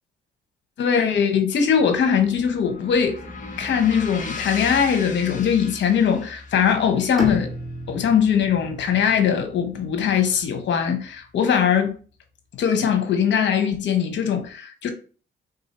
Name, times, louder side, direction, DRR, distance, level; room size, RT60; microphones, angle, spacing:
voice 1, 0.8-3.2 3.6-7.5 7.9-12.0 12.6-14.9, left 7 dB, 65° left, 1.0 m, -21 dB
sound 1, 1.6-9.8, left 3 dB, 40° left, 1.0 m, -38 dB
Bowed string instrument, 7.2-11.1, left 1 dB, ahead, 1.4 m, -35 dB
3.9 x 2.7 x 4.3 m
cardioid pair, 90°, 20 cm